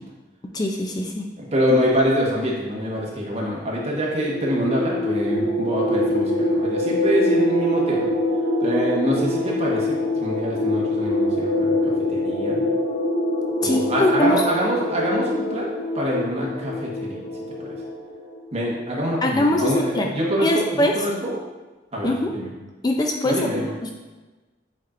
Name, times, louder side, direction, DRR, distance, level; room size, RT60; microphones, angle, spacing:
voice 1, 0.5-1.3 13.6-14.4 19.2-20.1 20.4-20.9 22.0-22.3 22.8-23.4 23.8-23.9, left 1 dB, 25° left, 1 dB, 0.4 m, -22 dB
voice 2, 1.4-8.0 8.6-12.6 13.6-15.7 15.9-17.2 17.6-17.8 18.5-21.4 21.9-22.5 23.2-23.7, equal, 35° right, -4 dB, 1.3 m, -25 dB
sound 1, 4.1-18.4, left 1 dB, 60° left, 1.1 m, -24 dB
8.5 x 4.4 x 2.5 m, 1.2 s
head